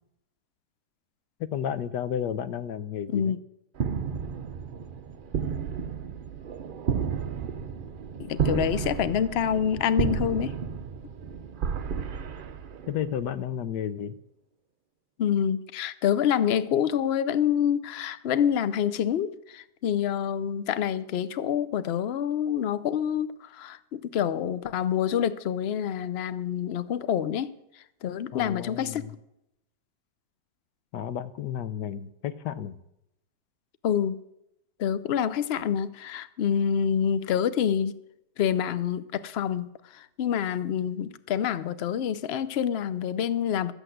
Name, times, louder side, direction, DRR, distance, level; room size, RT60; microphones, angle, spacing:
voice 1, 1.4-3.3 12.9-14.2 28.3-29.1 30.9-32.8, left 9 dB, 85° left, 12 dB, 1.4 m, -32 dB
sound 1, 3.7-13.3, right 7 dB, 70° right, 0.5 m, -32 dB
voice 2, 8.2-10.6 15.2-27.5 28.0-29.0 33.8-34.2 34.8-37.9 38.4-43.7, left 9 dB, 60° left, 14 dB, 0.6 m, -27 dB
13.5 x 8.1 x 7.8 m, 0.83 s
omnidirectional pair, 1.8 m